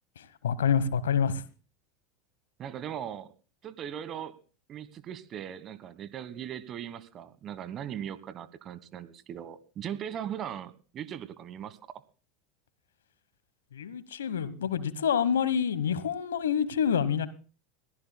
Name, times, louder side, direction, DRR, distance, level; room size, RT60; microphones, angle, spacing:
voice 1, 0.2-1.4 13.7-17.3, left 7 dB, 85° left, 1.1 m, -27 dB
voice 2, 2.6-3.3 3.6-4.4 4.7-12.0, right 9 dB, 40° right, 1.4 m, -39 dB
22.5 x 14.5 x 2.3 m
hypercardioid pair, 85°, 0 cm